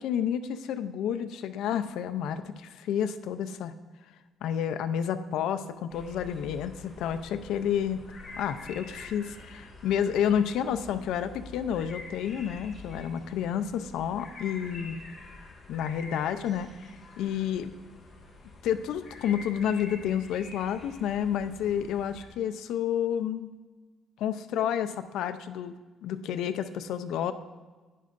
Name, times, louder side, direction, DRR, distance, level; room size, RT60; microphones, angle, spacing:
voice 1, 0.0-3.7 4.4-8.0 8.4-15.0 15.7-16.8 17.2-17.7 18.6-23.5 24.2-27.3, left 9 dB, 80° left, 10 dB, 0.5 m, -30 dB
sound 1, 5.9-22.3, left 3 dB, 25° left, 1.8 m, -47 dB
11.0 x 9.4 x 2.5 m, 1.3 s
cardioid pair, 165°, 0 cm